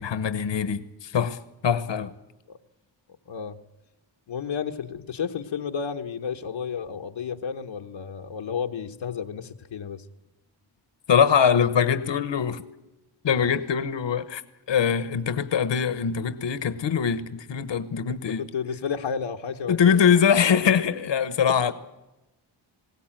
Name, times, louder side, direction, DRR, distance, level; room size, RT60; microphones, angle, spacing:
voice 1, 0.0-1.4 1.6-2.1 11.1-12.6 13.2-14.4 14.7-18.5 19.7-21.7, left 7 dB, 70° left, 1.1 m, -22 dB
voice 2, 3.3-3.6 4.3-10.0 18.1-20.2 21.4-21.7, left 6 dB, 85° left, 1.2 m, -32 dB
21.0 x 17.0 x 9.0 m
cardioid pair, 55°, 45 cm